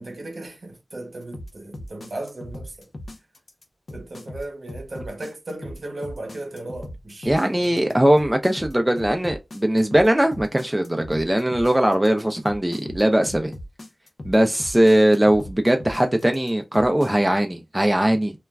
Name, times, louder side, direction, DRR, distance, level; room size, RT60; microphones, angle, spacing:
voice 1, 0.0-2.9 3.9-8.0, right 2 dB, 70° right, 0.7 m, -36 dB
sound 1, 1.3-17.1, left 1 dB, 70° left, 0.5 m, -38 dB
voice 2, 7.3-13.5 14.2-18.3, right 1 dB, 15° right, 0.4 m, -20 dB
2.3 x 2.1 x 3.3 m
wide cardioid pair, 55°, 0 cm